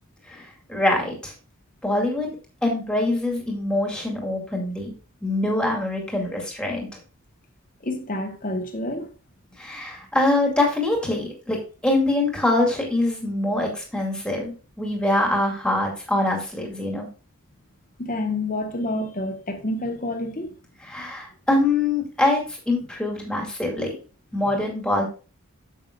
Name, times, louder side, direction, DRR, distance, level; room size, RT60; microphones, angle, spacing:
voice 1, 0.3-1.3 1.8-2.3 2.6-4.9 5.2-6.9 9.6-11.6 11.8-17.1 20.9-23.9 24.3-25.0, left 2 dB, 5° left, 2.3 m, -24 dB
voice 2, 7.8-9.1 18.0-20.6, left 1 dB, 40° left, 1.2 m, -28 dB
9.1 x 7.5 x 2.5 m
head